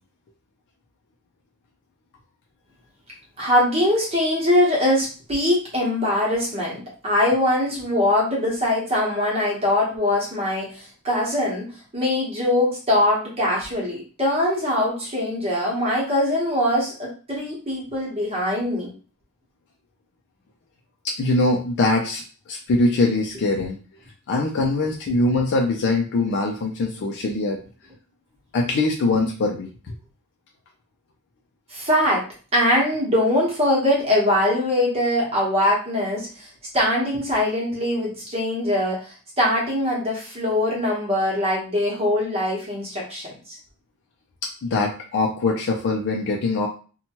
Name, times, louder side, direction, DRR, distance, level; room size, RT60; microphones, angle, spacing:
voice 1, 3.4-11.6 11.9-18.9 31.7-32.2 32.5-36.5 36.7-43.6, left 1 dB, 30° right, -4 dB, 1.0 m, -22 dB
voice 2, 21.0-22.2 22.5-23.8 24.3-27.6 28.5-29.9 44.6-46.7, left 2 dB, 55° left, 1 dB, 0.4 m, -22 dB
2.8 x 2.2 x 2.9 m, 0.37 s
head